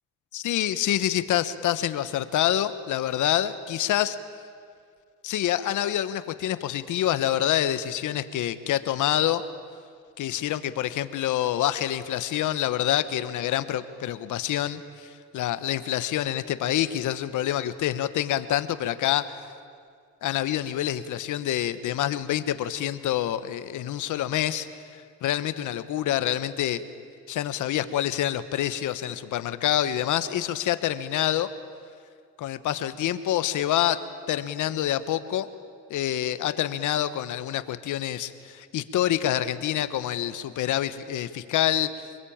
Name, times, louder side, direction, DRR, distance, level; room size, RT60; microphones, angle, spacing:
voice 1, 0.3-4.2 5.2-9.4 10.2-19.3 20.2-26.8 27.3-31.5 32.4-35.5 35.9-42.1, left 12 dB, 80° left, 12 dB, 1.3 m, -27 dB
26.5 x 21.0 x 8.8 m, 2.2 s
cardioid pair, 90°, 30 cm